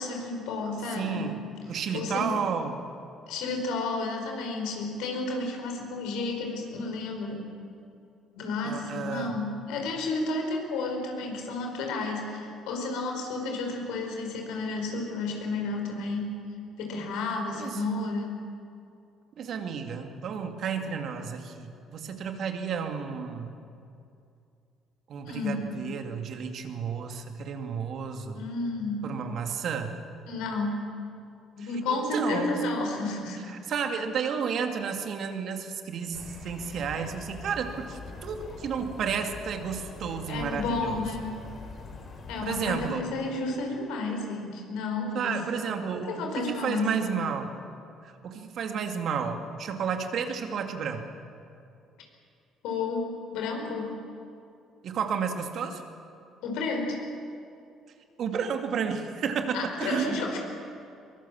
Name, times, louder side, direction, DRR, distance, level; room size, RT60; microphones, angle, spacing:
voice 1, 0.0-1.3 1.9-2.4 3.3-7.5 8.4-16.4 16.8-18.4 25.2-25.7 28.3-29.1 30.3-30.9 31.6-33.4 40.3-41.3 42.3-45.4 46.1-47.1 52.6-54.0 56.4-57.0 59.5-60.4, left 3 dB, 70° left, 2 dB, 5.1 m, -31 dB
voice 2, 0.9-1.4 1.7-2.8 8.6-9.4 17.6-17.8 19.4-23.5 25.1-28.4 29.0-30.0 31.9-32.6 33.5-41.1 42.4-43.1 45.1-47.5 48.0-51.0 54.8-55.8 58.2-60.2, right 6 dB, 60° right, 5 dB, 2.5 m, -32 dB
sound 1, 36.1-42.9, left 3 dB, 45° left, 4.5 m, -43 dB
23.0 x 22.5 x 7.5 m, 2.5 s
hypercardioid pair, 55°, 0 cm